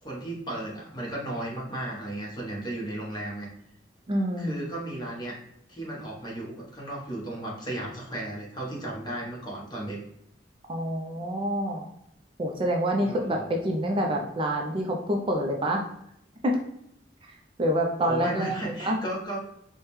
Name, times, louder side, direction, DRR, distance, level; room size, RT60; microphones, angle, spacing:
voice 1, 0.0-3.5 4.4-5.3 5.7-10.0 13.0-13.5 18.0-19.4, right 1 dB, 25° left, -3 dB, 1.0 m, -35 dB
voice 2, 4.1-4.5 10.7-11.9 12.4-15.8 16.4-16.6 17.6-18.5 18.8-19.0, equal, 30° right, 1 dB, 0.4 m, -27 dB
4.8 x 2.2 x 3.0 m, 0.76 s
head